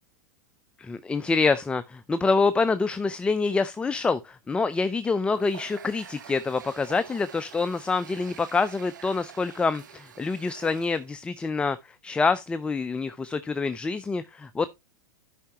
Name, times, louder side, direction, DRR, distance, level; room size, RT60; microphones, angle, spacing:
voice 1, 0.8-14.7, left 4 dB, 10° left, 0.4 m, -26 dB
Water tap faucet, 5.3-11.1, right 9 dB, 85° right, 1.1 m, -47 dB
12.5 x 5.6 x 2.9 m
hypercardioid pair, 110°, 10 cm